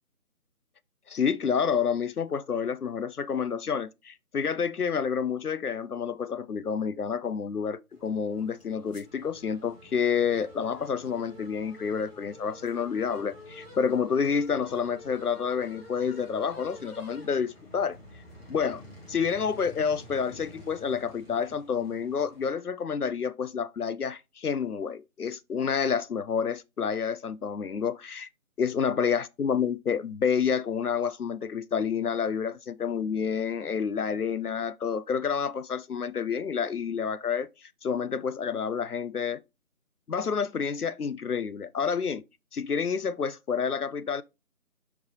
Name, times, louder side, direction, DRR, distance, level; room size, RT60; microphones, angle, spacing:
voice 1, 1.1-18.0 18.5-18.8 19.1-28.3 28.6-39.4 40.1-42.2 42.5-44.2, left 6 dB, 80° left, 0.7 m, -29 dB
sound 1, 7.9-22.5, left 1 dB, 40° left, 2.2 m, -49 dB
7.2 x 4.7 x 2.9 m
figure-of-eight pair, 165°, 45 cm